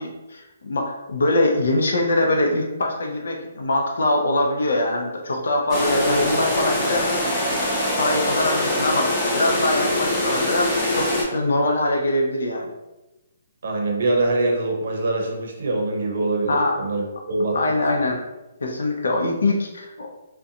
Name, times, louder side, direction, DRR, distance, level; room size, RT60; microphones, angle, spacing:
voice 1, 0.0-7.4 8.0-12.7 16.5-16.7 17.5-18.2 18.6-20.1, left 2 dB, 80° left, 1 dB, 0.6 m, -23 dB
sound 1, 5.7-11.2, left 1 dB, 15° left, 0.6 m, -23 dB
voice 2, 13.6-18.1, right 2 dB, 60° right, 1 dB, 0.6 m, -24 dB
2.5 x 2.2 x 2.7 m, 1.0 s
hypercardioid pair, 165°, 0 cm